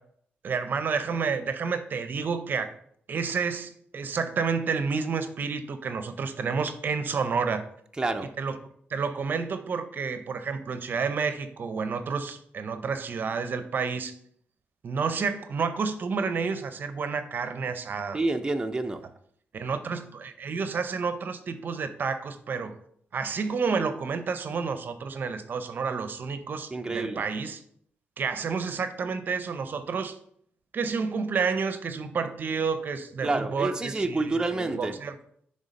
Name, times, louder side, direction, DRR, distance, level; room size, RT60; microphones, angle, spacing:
voice 1, 0.4-2.7 3.1-7.6 8.4-8.6 8.9-14.1 14.8-18.2 19.5-22.7 23.1-27.6 28.2-30.2 30.7-35.1, right 5 dB, 60° right, 0.6 m, -30 dB
voice 2, 8.0-8.3 18.1-19.0 26.7-27.3 33.2-35.0, right 2 dB, 20° right, 0.6 m, -28 dB
6.6 x 3.5 x 5.2 m
cardioid pair, 85°, 4 cm